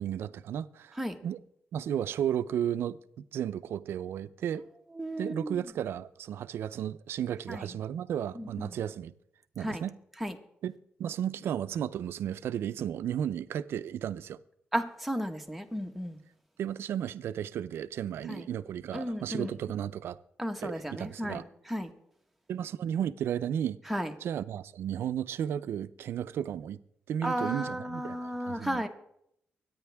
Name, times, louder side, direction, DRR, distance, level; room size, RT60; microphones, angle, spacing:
voice 1, 0.0-1.4 1.7-4.7 5.2-9.1 9.6-10.0 10.6-14.4 16.6-20.2 20.6-21.4 22.5-23.8 24.2-26.8 27.1-28.8, right 9 dB, 80° right, 0.5 m, -34 dB
voice 2, 5.0-5.6 7.5-7.6 8.4-8.5 9.6-9.8 10.2-10.3 14.7-16.2 18.3-18.5 18.9-19.5 20.4-21.4 21.7-21.9 23.9-24.1 27.2-28.9, equal, 5° right, 1.4 m, -33 dB
24.0 x 9.5 x 3.5 m
cardioid pair, 105°, 4 cm